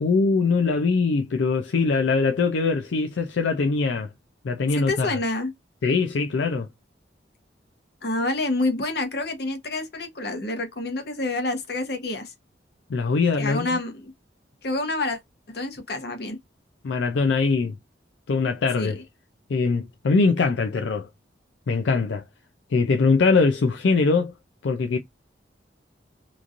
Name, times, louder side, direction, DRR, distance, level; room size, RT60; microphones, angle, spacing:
voice 1, 0.0-4.1 4.4-5.2 5.8-6.7 12.9-13.8 16.8-17.7 18.3-19.0 19.5-21.1 21.7-22.2 22.7-24.3 24.6-25.0, left 4 dB, 80° left, 0.4 m, -22 dB
voice 2, 4.7-5.5 8.0-12.3 13.4-14.1 14.6-15.2 15.5-16.4 18.8-18.9, left 2 dB, 60° left, 0.9 m, -28 dB
3.0 x 2.4 x 2.4 m
head